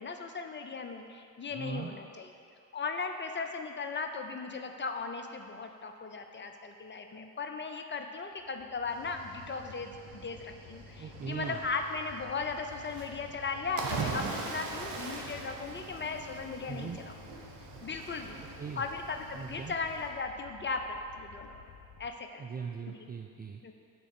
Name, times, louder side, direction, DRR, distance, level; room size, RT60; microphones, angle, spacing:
voice 1, 0.0-2.3 2.7-17.1 17.8-18.4 18.8-21.7 22.0-22.4 22.9-23.0 23.6-23.7, left 4 dB, 25° left, 5 dB, 0.6 m, -37 dB
voice 2, 1.5-1.9 11.0-11.6 16.6-17.0 18.6-18.8 19.3-19.8 22.4-23.6, right 5 dB, 20° right, 2 dB, 0.4 m, -39 dB
sound 1, 8.3-22.1, left 7 dB, 65° left, 0.9 m, -54 dB
Cricket / Waves surf, 8.9-20.1, right 4 dB, 55° right, 1.1 m, -42 dB
8.2 x 3.7 x 5.9 m, 2.2 s
figure-of-eight pair, 40°, 49 cm